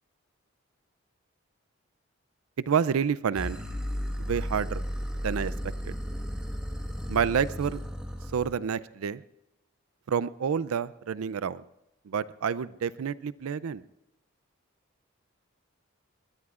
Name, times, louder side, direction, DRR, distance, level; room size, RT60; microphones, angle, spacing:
voice 1, 2.7-3.6 4.2-4.8 5.2-5.5 5.8-5.9 7.1-7.8 8.3-9.2 10.1-11.6 12.1-13.8, right 7 dB, 85° right, 17 dB, 0.4 m, -28 dB
sound 1, 3.3-8.6, equal, 5° right, 1.4 m, -34 dB
22.5 x 20.5 x 2.5 m, 0.90 s
head